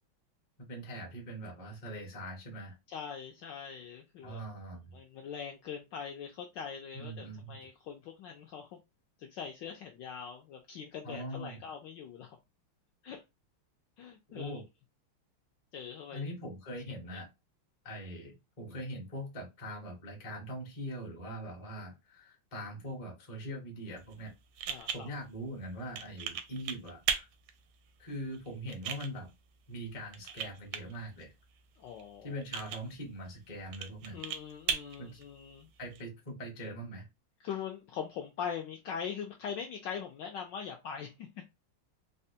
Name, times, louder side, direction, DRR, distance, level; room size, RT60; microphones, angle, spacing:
voice 1, 0.6-2.8 4.2-5.0 6.9-7.6 11.0-11.6 14.3-14.6 16.1-17.3 17.8-24.3 24.9-27.3 28.0-29.3 29.7-31.3 32.2-34.2 35.0-35.2 35.8-37.1, equal, 40° left, 0.5 m, -42 dB
voice 2, 2.9-4.4 4.9-8.8 9.2-12.4 13.0-13.2 14.0-14.6 15.7-16.2 17.1-17.2 24.7-25.1 31.8-32.4 34.1-35.7 37.4-41.3, left 7 dB, 75° left, 1.0 m, -42 dB
sound 1, 24.0-36.0, right 7 dB, 75° right, 1.1 m, -40 dB
4.1 x 2.2 x 2.7 m
omnidirectional pair, 2.4 m